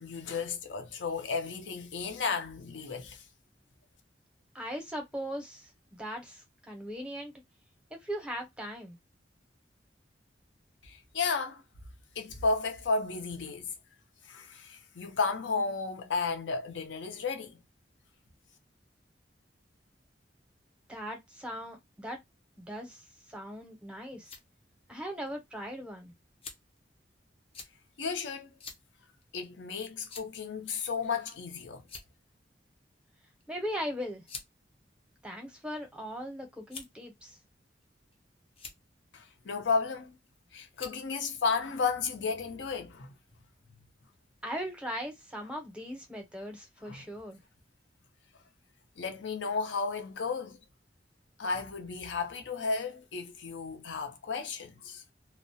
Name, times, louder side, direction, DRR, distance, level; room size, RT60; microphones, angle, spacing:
voice 1, 0.0-3.2 10.8-11.6 12.2-13.7 14.3-17.6 28.0-28.5 29.3-31.8 39.1-40.2 40.5-43.1 46.9-47.0 49.0-50.6 51.4-55.0, left 4 dB, 80° left, 0.6 m, -33 dB
voice 2, 4.5-7.3 7.9-9.0 20.9-22.2 22.6-24.3 24.9-26.1 33.5-34.2 35.2-37.4 44.4-47.4, equal, 5° right, 0.7 m, -39 dB
sound 1, 24.2-24.4 25.3-25.4 26.4-26.8 27.5-27.7 28.6-28.8 29.2-29.3 30.1-30.4 31.3-31.5 31.8-32.3 33.4-33.6 34.3-34.5 35.3-35.9 36.7-37.1 37.8-38.2 38.5-38.8 40.0-40.3 40.7-41.0, left 5 dB, 35° left, 0.6 m, -46 dB
2.3 x 2.0 x 2.7 m
head